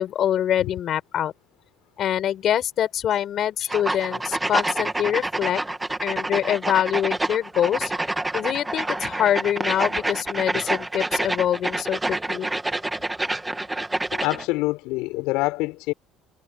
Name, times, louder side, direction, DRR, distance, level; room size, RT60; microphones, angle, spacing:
voice 1, 0.0-1.3 2.0-5.6 6.0-7.9 8.3-12.5, left 10 dB, 50° left, 5.1 m, -24 dB
sound 1, 3.7-14.5, right 2 dB, 10° right, 1.8 m, -27 dB
voice 2, 14.1-15.9, left 22 dB, 90° left, 6.7 m, -25 dB
cardioid pair, 120°, 0 cm